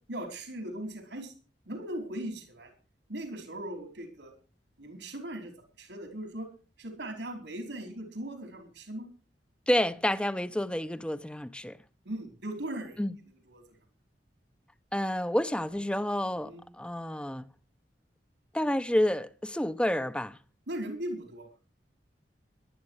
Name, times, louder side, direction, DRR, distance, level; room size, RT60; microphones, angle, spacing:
voice 1, 0.1-1.3 1.7-2.7 3.1-4.3 4.8-5.5 5.8-6.5 6.8-9.1 12.0-13.0 13.5-13.6 16.4-16.6 20.7-21.5, right 1 dB, 90° right, 4.8 m, -38 dB
voice 2, 9.7-11.8 13.0-13.1 14.9-17.4 18.5-20.4, left 1 dB, 5° left, 0.8 m, -29 dB
18.0 x 12.0 x 4.8 m
head